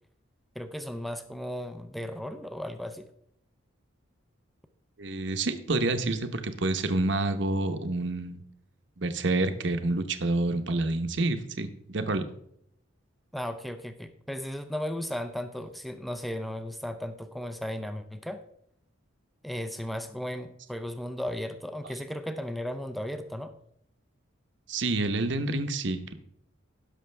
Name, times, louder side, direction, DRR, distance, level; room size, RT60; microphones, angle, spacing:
voice 1, 0.6-3.1 13.3-18.4 19.4-23.5, equal, ahead, 8 dB, 0.5 m, -35 dB
voice 2, 5.0-8.4 9.0-12.2 24.7-26.1, right 2 dB, 60° right, 8 dB, 0.9 m, -28 dB
16.5 x 6.4 x 3.3 m, 0.72 s
head